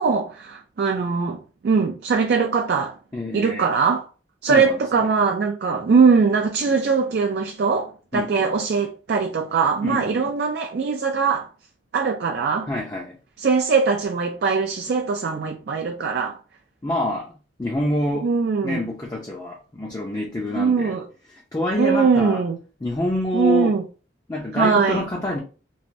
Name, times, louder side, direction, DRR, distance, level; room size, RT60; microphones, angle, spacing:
voice 1, 0.0-3.0 3.3-4.1 4.4-11.5 11.9-12.7 13.4-16.4 18.2-18.8 20.5-21.1 21.8-22.6 23.3-23.8 24.6-25.0, right 5 dB, 55° right, 0.3 m, -21 dB
voice 2, 3.1-3.7 4.4-4.8 8.1-8.5 9.8-10.2 12.7-13.2 16.8-17.3 17.6-18.3 18.6-21.0 21.5-22.4 22.8-23.7 24.3-25.4, left 1 dB, 20° left, 0.4 m, -26 dB
3.1 x 2.5 x 2.5 m
head